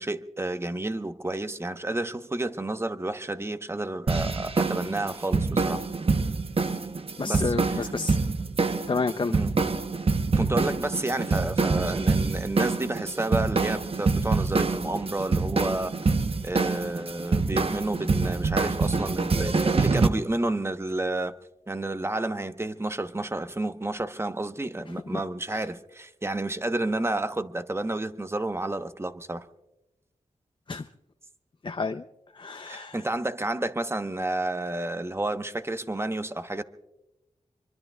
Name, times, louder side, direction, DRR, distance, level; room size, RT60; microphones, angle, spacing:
voice 1, 0.0-5.8 7.2-7.8 9.3-9.5 10.4-15.9 16.4-21.3 21.7-29.5 32.7-36.6, right 2 dB, 20° right, 0.9 m, -30 dB
sound 1, 4.1-20.1, right 4 dB, 45° right, 0.9 m, -26 dB
voice 2, 7.2-8.2 8.9-9.4 25.1-25.2 25.5-25.6 30.7-30.9 31.6-32.1 32.3-33.0, left 4 dB, 40° left, 0.6 m, -30 dB
26.0 x 23.5 x 2.3 m
wide cardioid pair, 70°, 13 cm